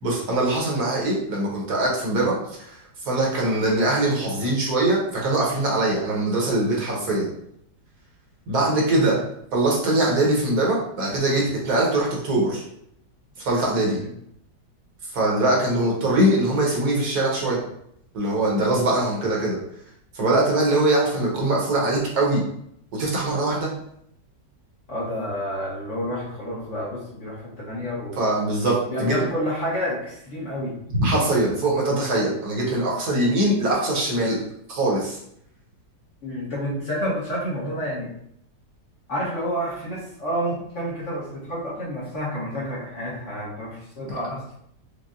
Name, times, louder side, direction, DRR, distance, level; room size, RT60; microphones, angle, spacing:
voice 1, 0.0-2.8 3.0-7.3 8.5-9.2 9.5-12.6 13.4-14.0 15.1-17.6 18.1-19.6 20.1-22.4 22.9-23.7 28.2-29.2 30.9-34.4 34.7-35.2, right 2 dB, 65° right, -3 dB, 1.3 m, -22 dB
voice 2, 24.9-28.2 28.9-30.8 36.2-38.1 39.1-44.5, equal, 50° left, -6 dB, 1.2 m, -29 dB
5.3 x 2.2 x 2.4 m, 0.73 s
omnidirectional pair, 1.9 m